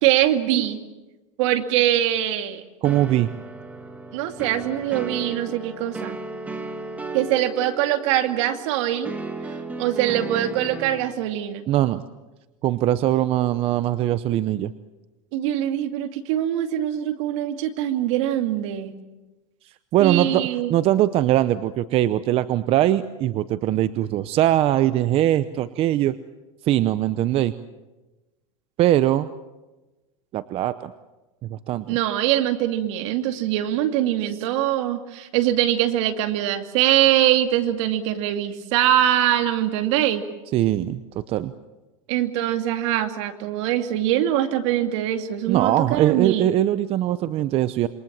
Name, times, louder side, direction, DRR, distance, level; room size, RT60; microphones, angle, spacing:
voice 1, 0.0-0.8 1.4-2.6 4.1-6.2 7.1-9.1 9.8-11.7 15.3-19.0 20.0-20.7 31.9-40.2 42.1-46.5, right 12 dB, 65° right, 7 dB, 2.5 m, -23 dB
sound 1, 2.8-11.1, right 2 dB, 10° right, 2.1 m, -35 dB
voice 2, 2.8-3.3 11.7-12.0 12.6-14.7 19.9-26.2 26.6-27.5 28.8-29.3 30.3-30.9 31.4-32.0 40.5-41.5 45.5-47.9, right 13 dB, 35° right, 14 dB, 0.8 m, -21 dB
27.5 x 23.5 x 7.4 m, 1.1 s
supercardioid pair, 145°, 17 cm